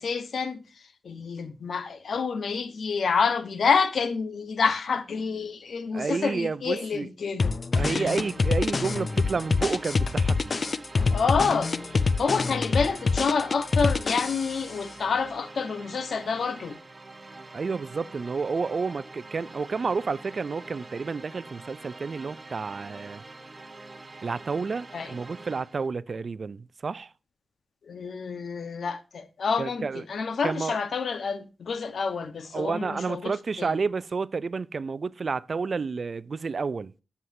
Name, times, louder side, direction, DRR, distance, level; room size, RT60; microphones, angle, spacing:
voice 1, 0.0-8.1 11.1-16.8 24.9-25.1 27.8-33.8, left 5 dB, 75° left, 1.0 m, -28 dB
voice 2, 5.9-7.1 7.7-10.6 17.5-23.2 24.2-27.1 29.6-30.0 30.4-30.8 32.5-36.9, right 4 dB, 45° right, 0.3 m, -30 dB
sound 1, 7.4-14.7, left 4 dB, 45° left, 0.4 m, -25 dB
sound 2, 7.9-25.9, right 2 dB, 25° right, 0.9 m, -45 dB
11.0 x 7.3 x 2.6 m
wide cardioid pair, 165°, 0 cm